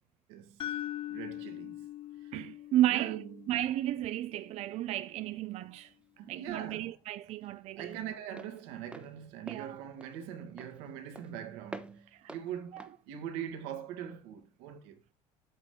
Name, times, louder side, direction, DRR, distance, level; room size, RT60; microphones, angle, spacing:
voice 1, 0.3-0.6 1.1-1.9 2.2-2.3 2.9-3.4 6.2-6.9 7.7-15.0, right 9 dB, 85° right, 1.8 m, -42 dB
sound 1, 0.6-4.7, left 12 dB, 40° left, 0.6 m, -42 dB
voice 2, 2.3-3.2 3.5-5.9 6.3-8.0 9.5-9.8 12.1-12.3 12.7-12.9, right 13 dB, 50° right, 0.5 m, -33 dB
Walk footsteps, 5.5-14.2, right 2 dB, 5° right, 1.0 m, -51 dB
8.6 x 8.2 x 3.7 m
cardioid pair, 115°, 14 cm